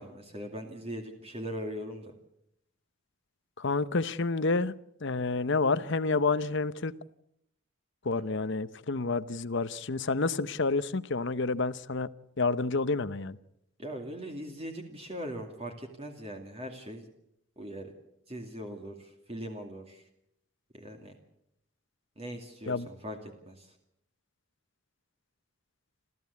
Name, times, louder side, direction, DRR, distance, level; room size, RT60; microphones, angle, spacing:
voice 1, 0.0-2.1 8.1-8.4 13.8-17.0 17.6-17.9 18.3-20.0 20.7-21.1 22.2-23.2 23.5-23.7, equal, 30° right, 3 dB, 2.4 m, -40 dB
voice 2, 3.6-4.7 5.0-6.9 8.0-12.1 12.4-13.4 22.7-22.9, left 3 dB, 55° left, 15 dB, 0.8 m, -29 dB
28.5 x 14.0 x 8.3 m, 0.78 s
head